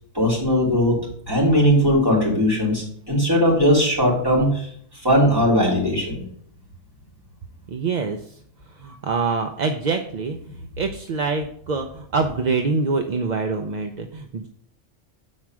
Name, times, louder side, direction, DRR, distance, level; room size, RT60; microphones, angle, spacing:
voice 1, 0.1-1.0 1.3-4.7 5.0-6.3, equal, 20° right, -5 dB, 3.3 m, -19 dB
voice 2, 7.7-8.4 8.8-14.5, right 4 dB, 45° right, 5 dB, 0.6 m, -25 dB
7.5 x 4.6 x 6.1 m, 0.64 s
omnidirectional pair, 1.3 m